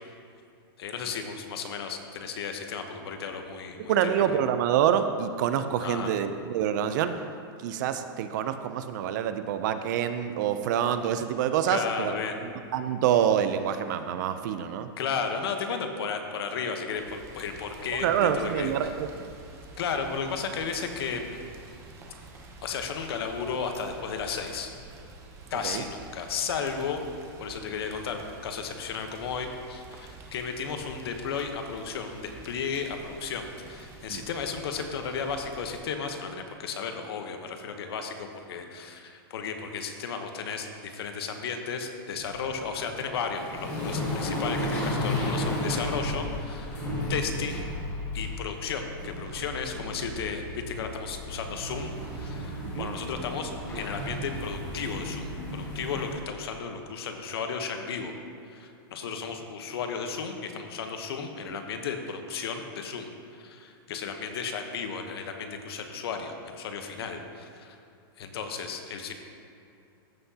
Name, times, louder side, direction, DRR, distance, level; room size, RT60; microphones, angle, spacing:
voice 1, 0.8-4.2 5.8-6.1 11.7-12.4 15.0-18.1 18.3-18.7 19.8-21.4 22.6-24.7 25.5-27.0 27.4-46.8 47.1-47.7 48.1-58.1 58.5-63.1 63.4-67.8 68.2-69.1, left 5 dB, 75° left, 5 dB, 1.0 m, -34 dB
voice 2, 3.8-7.2 7.6-12.2 12.4-14.9 17.9-19.1 25.6-25.8 34.1-34.2 52.6-52.9, right 9 dB, 50° right, 10 dB, 0.5 m, -27 dB
Rain, 17.0-35.8, right 2 dB, 20° right, 0.8 m, -48 dB
sound 1, 42.1-56.2, left 1 dB, 20° left, 1.9 m, -34 dB
sound 2, 49.0-54.6, right 2 dB, 80° right, 1.3 m, -44 dB
14.0 x 5.8 x 2.8 m, 2.7 s
supercardioid pair, 160°, 13 cm